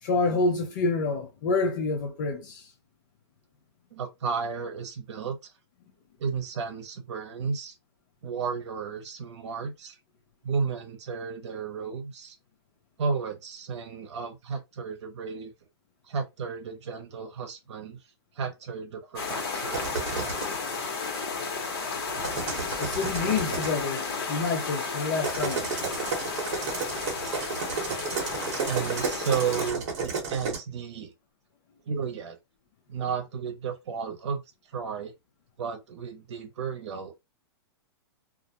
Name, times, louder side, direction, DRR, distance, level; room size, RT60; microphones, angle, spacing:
voice 1, 0.0-2.7 22.8-25.7, left 3 dB, 45° left, 0.5 m, -28 dB
voice 2, 3.9-5.4 6.2-7.7 8.2-9.9 10.4-12.4 13.0-15.5 16.1-18.0 18.3-20.4 28.7-31.1 31.9-32.4 32.9-34.4 34.7-35.1 35.6-37.2, right 6 dB, 85° right, 0.7 m, -33 dB
sound 1, 19.2-29.7, left 4 dB, 60° left, 1.0 m, -33 dB
sound 2, 19.7-20.6 22.1-23.8 25.2-30.6, right 5 dB, 40° right, 0.9 m, -32 dB
2.4 x 2.1 x 2.8 m
supercardioid pair, 165°, 14 cm